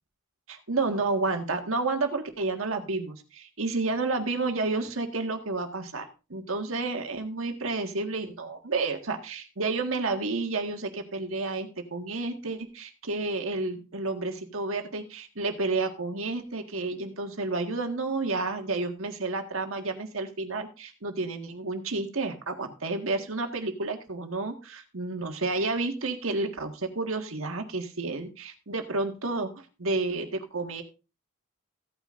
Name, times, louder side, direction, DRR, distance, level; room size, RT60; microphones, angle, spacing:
voice 1, 0.5-30.8, right 3 dB, 70° right, 5 dB, 1.7 m, -30 dB
16.0 x 9.1 x 2.5 m, 0.31 s
head